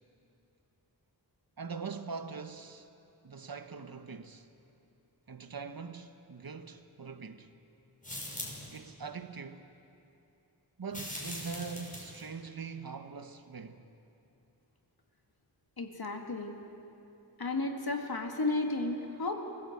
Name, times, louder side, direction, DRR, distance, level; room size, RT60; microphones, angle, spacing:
voice 1, 1.6-2.9 3.2-4.5 5.3-7.5 8.7-9.7 10.8-13.9, right 5 dB, 55° right, 1.2 m, -42 dB
sound 1, 8.0-8.8 10.9-12.2, left 1 dB, 20° left, 6.1 m, -41 dB
voice 2, 15.8-16.6 17.4-19.3, left 2 dB, 60° left, 2.2 m, -33 dB
23.5 x 15.0 x 8.0 m
wide cardioid pair, 55°, 42 cm